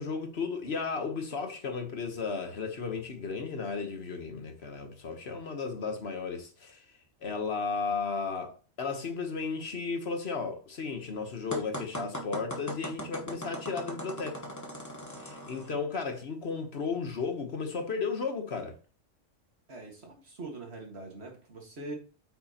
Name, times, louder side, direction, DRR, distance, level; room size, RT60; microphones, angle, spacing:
voice 1, 0.0-6.8 7.2-14.4 15.2-18.8, left 4 dB, 55° left, 1.3 m, -34 dB
sound 1, 11.5-15.7, equal, 15° left, 1.0 m, -39 dB
voice 2, 19.7-21.9, right 2 dB, 55° right, 2.0 m, -43 dB
8.5 x 5.9 x 2.9 m
omnidirectional pair, 1.3 m